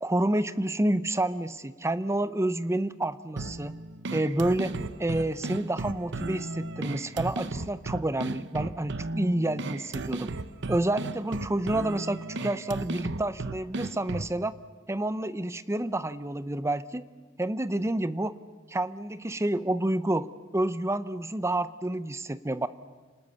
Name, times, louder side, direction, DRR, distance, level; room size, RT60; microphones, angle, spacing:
voice 1, 0.0-3.7 4.1-10.3 10.7-14.5 14.9-17.1 17.4-18.3 18.7-22.7, right 1 dB, 15° right, 14 dB, 0.6 m, -29 dB
sound 1, 3.4-14.4, right 2 dB, 60° right, 0.9 m, -35 dB
29.0 x 19.5 x 6.9 m, 1.4 s
head